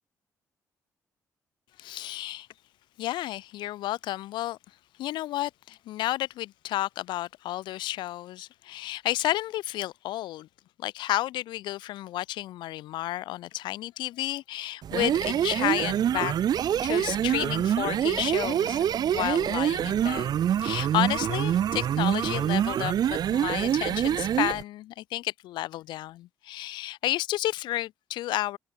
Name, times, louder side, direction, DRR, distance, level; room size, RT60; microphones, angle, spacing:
voice 1, 1.8-2.5 3.0-4.6 5.0-10.5 10.8-16.3 16.8-28.6, left 15 dB, 75° left, 0.5 m, -31 dB
sound 1, 14.8-24.6, right 10 dB, 60° right, 0.4 m, -26 dB
supercardioid pair, 55°, 8 cm